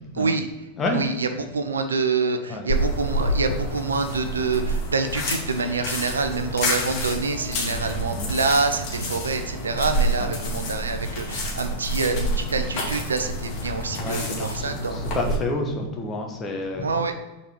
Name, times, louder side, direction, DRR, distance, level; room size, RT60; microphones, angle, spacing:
voice 1, 0.1-0.5 0.9-15.0 16.8-17.1, right 4 dB, 75° right, 7 dB, 0.6 m, -26 dB
sound 1, 2.7-15.4, equal, 45° left, 2.0 m, -28 dB
voice 2, 10.2-10.6 13.9-16.9, left 2 dB, 20° left, 1 dB, 1.4 m, -29 dB
7.0 x 4.3 x 5.1 m, 1.1 s
figure-of-eight pair, 90°, 0 cm